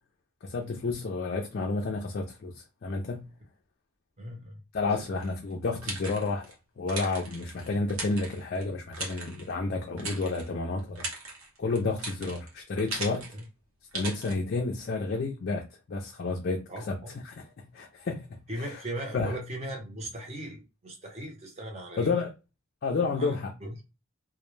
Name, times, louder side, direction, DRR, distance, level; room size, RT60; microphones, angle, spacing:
voice 1, 0.4-3.3 4.7-11.1 11.6-13.3 13.9-17.0 17.2-18.8 19.1-19.4 22.0-22.3 22.8-23.5, left 3 dB, 50° left, 0.4 m, -31 dB
voice 2, 4.2-5.2 12.2-12.3 13.3-13.4 16.7-17.1 18.5-22.3 23.2-23.7, right 1 dB, 30° right, 0.7 m, -39 dB
sound 1, 5.2-6.5 6.9-8.6 8.9-9.5 10.0-10.5 10.8-13.5 13.9-14.4, right 2 dB, 80° right, 0.9 m, -38 dB
2.2 x 2.1 x 3.1 m
head